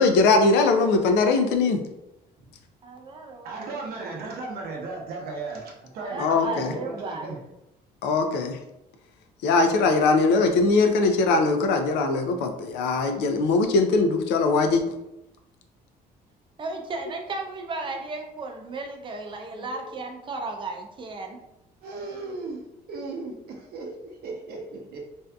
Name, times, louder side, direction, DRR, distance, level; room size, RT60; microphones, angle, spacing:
voice 1, 0.0-1.8 6.2-6.7 8.0-8.6 9.4-14.8, left 3 dB, 85° left, 6 dB, 0.4 m, -21 dB
voice 2, 2.8-4.2 6.0-7.3 16.6-21.4, right 3 dB, 30° right, 2 dB, 0.5 m, -35 dB
voice 3, 3.4-7.4 21.8-25.0, right 3 dB, 65° right, 0 dB, 0.7 m, -36 dB
2.6 x 2.3 x 2.3 m, 0.88 s
cardioid pair, 110°, 17 cm